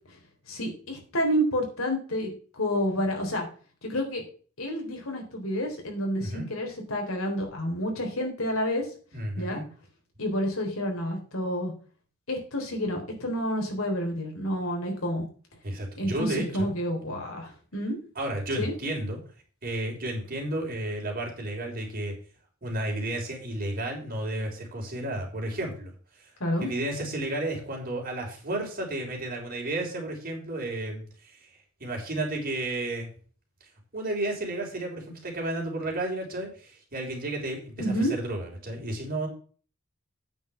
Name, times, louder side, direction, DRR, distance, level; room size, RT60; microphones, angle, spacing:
voice 1, 0.5-3.5 3.8-4.2 4.6-8.8 9.4-9.6 10.2-11.7 12.3-15.3 16.0-18.0 18.6-18.7 26.4-26.7 37.8-38.1, equal, 70° left, 2 dB, 3.8 m, -29 dB
voice 2, 9.1-9.6 15.6-16.7 18.2-19.2 19.6-22.1 22.6-25.9 26.6-31.3 31.8-33.1 33.9-39.3, right 1 dB, 45° right, 1 dB, 4.0 m, -32 dB
9.1 x 5.7 x 7.1 m, 0.41 s
head